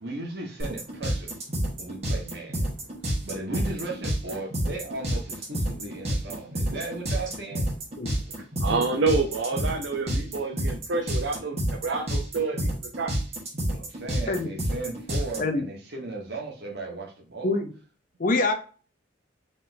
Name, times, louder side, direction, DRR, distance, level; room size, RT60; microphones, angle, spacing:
voice 1, 0.0-1.3 1.8-2.7 3.2-7.7 13.7-17.6, right 2 dB, 60° right, 1 dB, 1.3 m, -36 dB
sound 1, 0.6-15.4, equal, 35° right, 1.5 m, -28 dB
voice 2, 8.6-11.6 11.8-12.6 13.0-13.1, right 3 dB, 75° right, 2 dB, 0.6 m, -27 dB
voice 3, 18.2-18.5, left 3 dB, 45° left, 7 dB, 0.6 m, -25 dB
4.0 x 3.8 x 2.7 m, 0.38 s
head